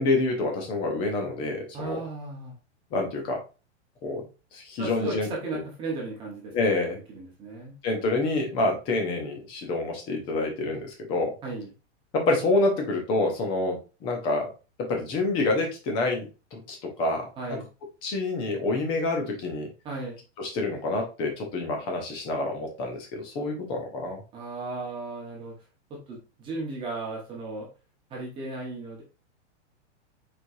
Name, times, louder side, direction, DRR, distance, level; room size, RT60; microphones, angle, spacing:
voice 1, 0.0-2.0 2.9-3.4 4.0-4.2 4.5-5.6 6.5-7.0 7.8-11.3 12.1-14.5 14.8-17.6 18.0-19.7 20.4-24.2, left 2 dB, 15° left, 3 dB, 0.6 m, -27 dB
voice 2, 1.7-2.5 4.8-6.5 7.1-7.7 11.4-11.7 17.4-17.7 19.8-20.2 24.3-25.5 25.9-27.7 28.1-29.0, right 3 dB, 15° right, -3 dB, 1.1 m, -35 dB
4.7 x 4.2 x 2.6 m, 0.31 s
supercardioid pair, 175°, 35 cm